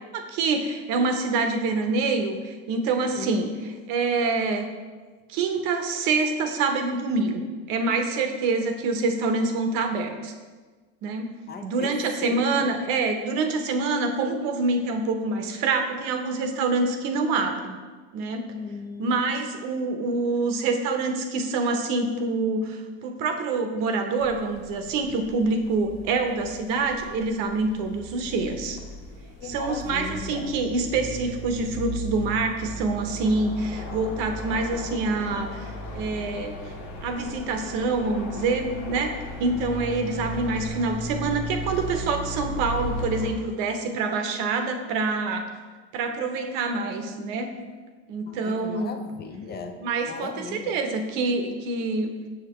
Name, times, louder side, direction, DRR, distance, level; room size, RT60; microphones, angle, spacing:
voice 1, 0.1-4.7 5.3-10.3 11.0-11.3 11.6-17.8 18.1-18.5 19.0-28.8 29.4-36.6 37.0-45.5 45.9-47.5 48.1-48.9 49.8-52.1, right 3 dB, 70° right, 5 dB, 0.8 m, -26 dB
voice 2, 11.5-12.7 18.5-19.2 29.4-30.5 48.3-49.8 50.1-50.8, left 4 dB, 30° left, 5 dB, 0.5 m, -37 dB
sound 1, 24.2-43.3, left 1 dB, 65° left, 1.4 m, -36 dB
6.6 x 5.1 x 3.0 m, 1.4 s
supercardioid pair, 120°, 33 cm